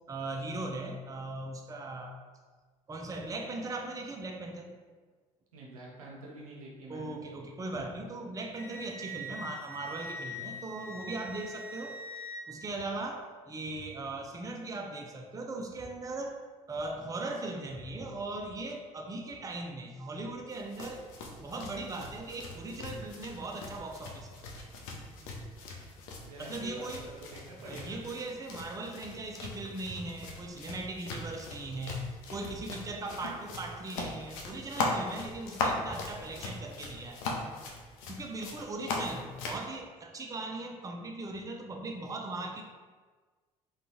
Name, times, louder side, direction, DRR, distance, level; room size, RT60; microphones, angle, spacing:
voice 1, 0.1-2.2 2.9-4.8 6.9-12.0 12.5-16.4 16.7-21.1 21.3-24.3 26.4-27.1 27.6-32.0 32.3-37.2 38.1-42.6, right 2 dB, 20° right, 2 dB, 0.5 m, -39 dB
voice 2, 5.5-7.2 26.2-28.0, right 1 dB, 85° right, -2 dB, 0.6 m, -47 dB
Wind instrument woodwind instrument, 8.5-12.4, left 1 dB, 50° right, 0.7 m, -42 dB
sound 1, 20.5-39.6, left 3 dB, 70° left, 0.5 m, -39 dB
3.7 x 2.3 x 3.0 m, 1.4 s
figure-of-eight pair, 50°, 18 cm